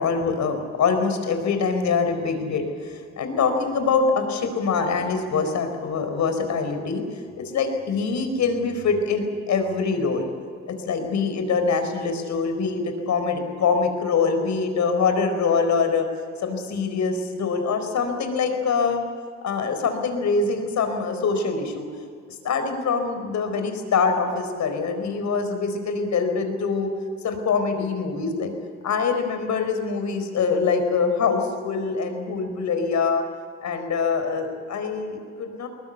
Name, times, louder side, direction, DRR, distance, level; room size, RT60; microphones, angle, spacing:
voice 1, 0.0-7.0 7.4-10.3 10.7-16.1 16.4-19.0 19.4-21.9 22.4-26.9 27.2-28.5 28.8-33.2 33.6-35.7, left 5 dB, 65° left, 7 dB, 4.4 m, -24 dB
22.0 x 20.0 x 8.2 m, 2.1 s
cardioid pair, 90°, 30 cm